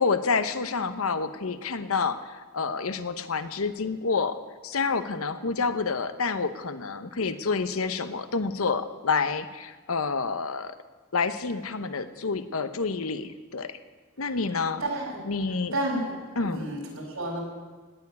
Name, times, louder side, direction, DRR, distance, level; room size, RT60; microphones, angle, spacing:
voice 1, 0.0-4.4 4.6-10.7 11.1-13.8 14.2-14.8 15.2-15.8 16.4-16.8, left 4 dB, 90° left, 11 dB, 0.9 m, -28 dB
voice 2, 14.8-15.2 15.7-17.4, right 1 dB, 80° right, -2 dB, 5.4 m, -31 dB
17.5 x 7.1 x 9.8 m, 1.4 s
head